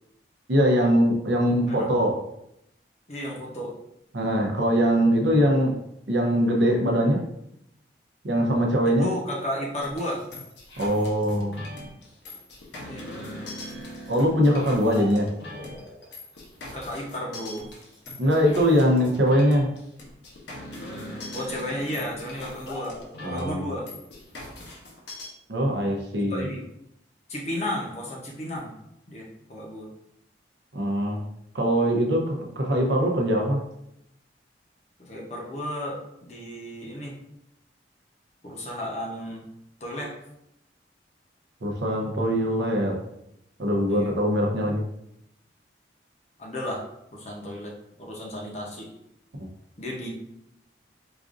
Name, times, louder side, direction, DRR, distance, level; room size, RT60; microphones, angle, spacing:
voice 1, 0.5-2.2 4.1-5.8 6.1-7.2 8.2-9.1 10.8-11.6 14.1-15.3 18.2-19.7 23.2-23.7 25.5-26.5 30.7-31.2 31.5-33.6 41.6-42.9 43.6-44.8, equal, 75° right, 0 dB, 0.7 m, -22 dB
voice 2, 3.1-3.8 8.9-10.3 12.8-13.1 16.6-17.7 21.3-23.9 26.2-26.6 27.3-28.7 29.1-29.9 35.0-37.2 38.4-39.4 39.8-40.1 43.9-44.1 46.4-46.8 47.1-48.9 49.8-50.1, left 1 dB, 35° left, -2 dB, 0.7 m, -33 dB
sound 1, 9.8-25.3, left 1 dB, 75° left, 0.9 m, -40 dB
5.0 x 2.5 x 2.5 m, 0.80 s
head